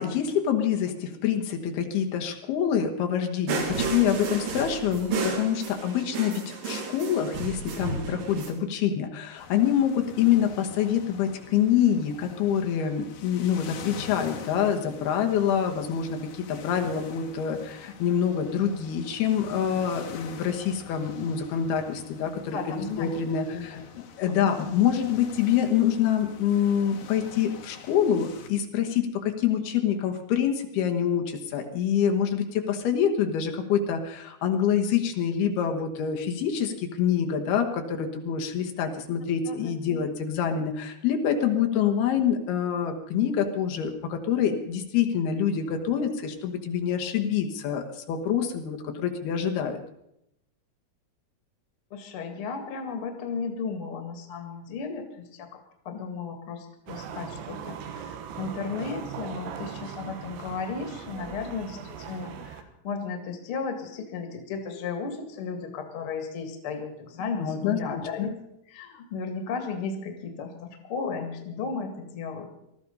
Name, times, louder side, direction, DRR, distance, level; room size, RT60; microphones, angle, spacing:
voice 1, 0.0-23.8 24.2-49.8 67.4-68.0, left 8 dB, 75° left, 4 dB, 3.3 m, -26 dB
sound 1, 3.5-8.5, right 4 dB, 65° right, 3.8 m, -32 dB
sound 2, 9.4-28.5, left 7 dB, 60° left, 2.4 m, -45 dB
voice 2, 22.5-23.1 23.5-23.8 24.4-24.8 39.5-40.0 51.9-68.3 68.7-72.6, left 5 dB, 40° left, 6 dB, 2.3 m, -35 dB
sound 3, 56.9-62.6, right 8 dB, 90° right, 3.3 m, -39 dB
19.5 x 13.5 x 5.5 m, 0.79 s
omnidirectional pair, 4.6 m